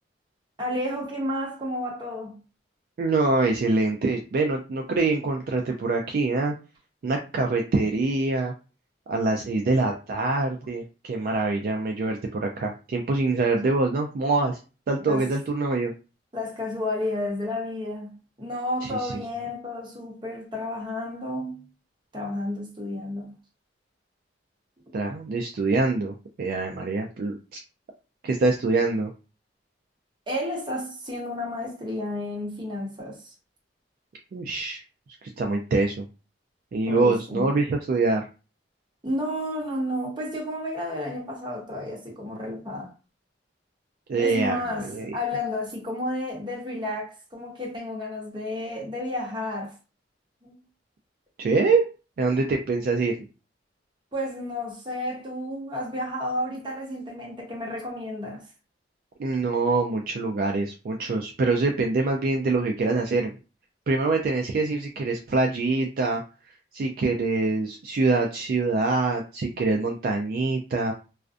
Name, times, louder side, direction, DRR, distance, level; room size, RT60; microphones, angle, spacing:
voice 1, 0.6-2.4 15.0-15.3 16.3-21.6 22.1-23.4 30.3-33.3 36.8-37.4 39.0-42.9 44.2-49.7 50.4-50.6 54.1-58.4, left 1 dB, 25° right, 0.9 m, -31 dB
voice 2, 3.0-6.5 7.0-8.5 9.1-14.6 14.9-15.9 18.8-19.1 24.9-27.6 28.2-29.1 34.3-34.8 35.2-36.1 36.7-38.2 44.1-44.6 44.9-45.1 51.4-51.9 52.2-53.1 59.2-63.3 63.9-66.2 66.7-70.9, right 3 dB, 55° right, 0.3 m, -25 dB
2.4 x 2.1 x 2.4 m
head